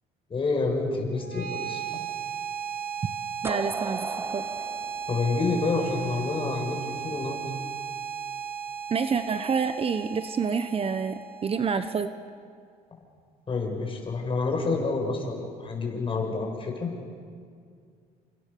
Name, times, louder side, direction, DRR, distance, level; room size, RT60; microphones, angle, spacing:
voice 1, 0.3-1.8 5.1-7.4 13.5-16.9, left 3 dB, 30° left, 1 dB, 6.7 m, -28 dB
sound 1, 1.1-12.2, right 7 dB, 60° right, 3.2 m, -36 dB
sound 2, 3.4-6.3, right 3 dB, 15° right, 0.8 m, -37 dB
voice 2, 3.4-4.1 4.3-4.4 8.9-12.1, right 6 dB, 35° right, 10 dB, 1.1 m, -27 dB
30.0 x 26.5 x 7.0 m, 2.2 s
cardioid pair, 110°, 17 cm